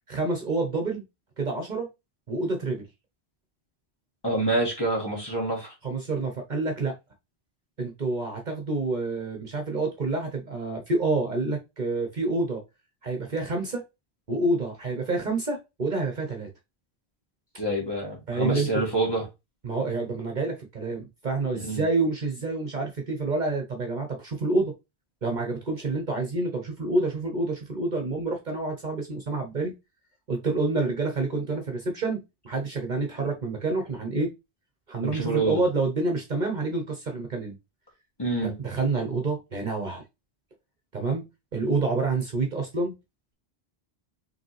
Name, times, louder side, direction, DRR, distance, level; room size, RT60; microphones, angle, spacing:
voice 1, 0.1-1.0 1.4-1.9 2.3-2.8 5.8-6.9 7.8-12.6 13.0-13.8 14.3-16.5 18.3-18.8 19.6-24.7 25.2-29.7 30.3-34.3 34.9-37.6 38.4-40.0 40.9-41.2 41.5-42.9, right 3 dB, 45° right, 1.1 m, -28 dB
voice 2, 4.2-5.7 17.6-19.3 21.6-21.8 35.0-35.6 38.2-38.6, right 2 dB, 20° left, 1.9 m, -27 dB
5.0 x 3.2 x 3.1 m
omnidirectional pair, 1.1 m